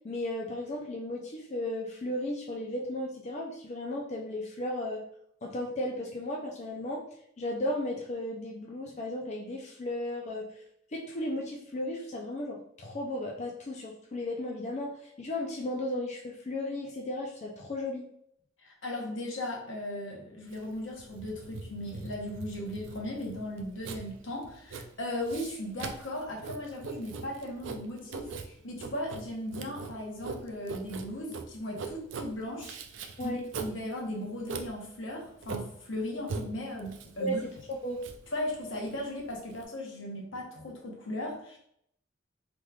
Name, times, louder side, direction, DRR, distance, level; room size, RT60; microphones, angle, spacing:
voice 1, 0.0-5.0 5.4-7.1 7.4-10.6 10.9-18.0 33.2-33.4 37.2-38.0, left 1 dB, 35° left, -1 dB, 0.4 m, -35 dB
voice 2, 18.6-32.8 33.2-37.4 38.3-41.6, left 1 dB, 75° left, -1 dB, 0.9 m, -37 dB
Writing, 20.5-39.6, right 4 dB, 65° right, 0.4 m, -42 dB
3.5 x 3.0 x 2.3 m, 0.70 s
head